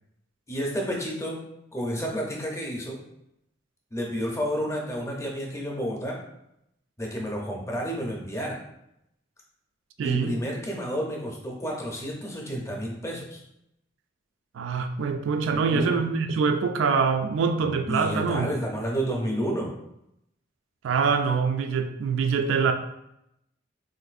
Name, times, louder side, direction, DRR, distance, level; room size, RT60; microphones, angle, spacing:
voice 1, 0.5-1.4 1.7-3.0 3.9-6.2 7.0-8.6 10.0-13.4 15.5-15.9 17.6-19.7, equal, 15° left, -1 dB, 0.6 m, -30 dB
voice 2, 10.0-10.4 14.5-18.5 20.8-22.7, right 5 dB, 90° right, 7 dB, 0.3 m, -24 dB
3.8 x 2.5 x 2.4 m, 0.81 s
head